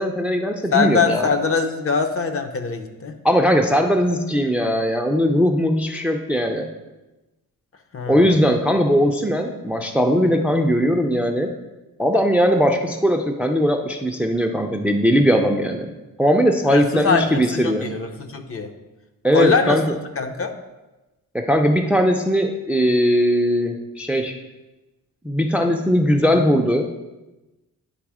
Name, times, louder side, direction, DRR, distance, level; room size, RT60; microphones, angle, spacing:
voice 1, 0.0-1.3 3.2-6.7 8.1-11.5 12.0-15.9 16.2-17.9 19.2-19.9 21.3-24.3 25.2-26.9, equal, 5° right, 4 dB, 0.4 m, -19 dB
voice 2, 0.7-3.2 7.9-8.3 16.7-18.7 19.3-19.8 20.2-20.5, left 5 dB, 40° left, 6 dB, 0.7 m, -22 dB
9.6 x 3.4 x 4.8 m, 1.1 s
cardioid pair, 125°, 35 cm